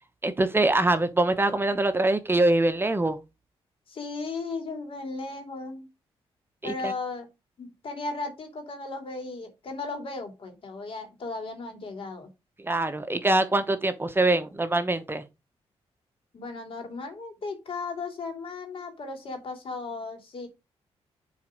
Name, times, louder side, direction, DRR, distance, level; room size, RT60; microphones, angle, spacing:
voice 1, 0.2-3.2 6.6-6.9 12.6-15.2, right 2 dB, 20° right, 0.9 m, -24 dB
voice 2, 3.9-5.9 6.6-7.3 7.6-12.3 16.3-20.5, left 3 dB, 55° left, 2.8 m, -36 dB
7.3 x 4.1 x 5.1 m
cardioid pair, 80°, 11 cm